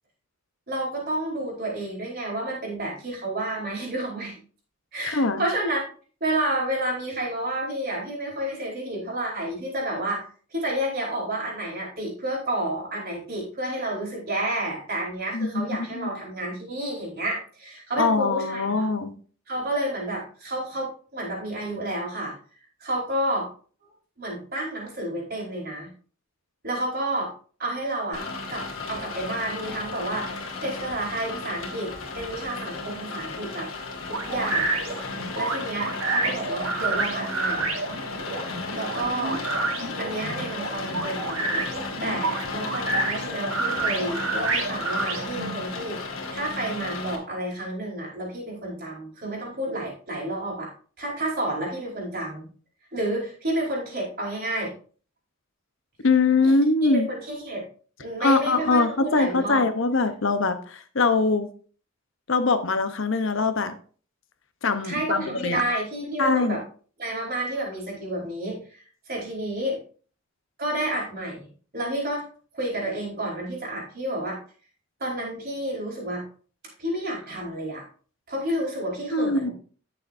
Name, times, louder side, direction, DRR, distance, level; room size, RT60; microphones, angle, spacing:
voice 1, 0.7-4.3 4.9-5.8 6.2-18.9 19.5-22.3 22.8-23.5 24.2-25.9 26.6-27.3 27.6-33.7 34.1-37.8 38.7-39.4 40.0-46.0 46.3-50.7 51.0-52.5 52.9-54.7 56.4-56.5 56.8-57.6 58.0-59.6 64.8-66.6 67.0-69.8 70.6-72.2 72.5-74.4 75.0-76.2 76.8-77.8 78.3-79.5, right 1 dB, 45° right, 4.7 m, -30 dB
voice 2, 5.0-5.4 15.3-15.7 15.9-16.1 18.0-19.1 56.0-57.1 58.2-61.5 62.3-63.8 64.6-65.6 66.2-66.6 79.1-79.5, left 3 dB, 65° left, 0.9 m, -22 dB
Rain, 28.1-47.1, left 3 dB, 80° left, 2.0 m, -34 dB
sound 1, 34.1-45.6, right 3 dB, 80° right, 1.9 m, -28 dB
14.0 x 6.8 x 2.7 m
head